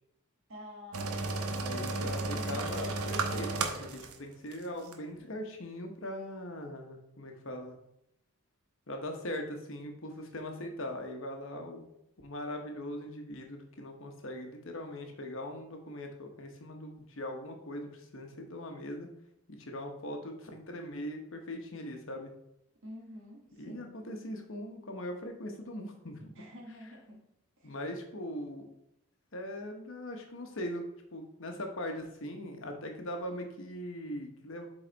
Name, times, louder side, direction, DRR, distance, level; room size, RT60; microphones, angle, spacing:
voice 1, 0.5-2.6 22.8-23.9 26.3-27.2 27.6-27.7, equal, 55° right, -3 dB, 1.5 m, -49 dB
sound 1, 0.9-4.2 4.5-4.6 4.9-5.0, right 3 dB, 80° right, 0.8 m, -34 dB
voice 2, 1.5-7.8 8.9-11.8 12.2-19.1 19.5-22.3 23.6-26.3 27.6-28.7 29.3-30.8 31.1-34.7, left 1 dB, 60° left, 4 dB, 1.1 m, -40 dB
7.8 x 4.1 x 4.0 m, 0.79 s
head